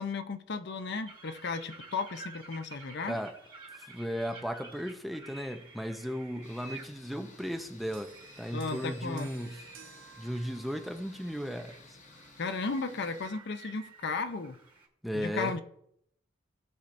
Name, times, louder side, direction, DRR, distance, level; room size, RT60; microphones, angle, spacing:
voice 1, 0.0-3.2 8.5-9.5 12.4-14.6 15.1-15.6, left 4 dB, 60° left, 0.7 m, -35 dB
sound 1, 1.1-14.9, right 3 dB, 25° right, 1.8 m, -52 dB
voice 2, 3.8-8.1 8.4-9.6 10.2-12.0 15.0-15.5, equal, ahead, 0.6 m, -36 dB
sound 2, 6.4-13.3, left 3 dB, 40° left, 1.0 m, -56 dB
sound 3, 7.9-11.5 12.4-12.6, right 6 dB, 80° right, 1.0 m, -55 dB
17.0 x 5.7 x 2.6 m
head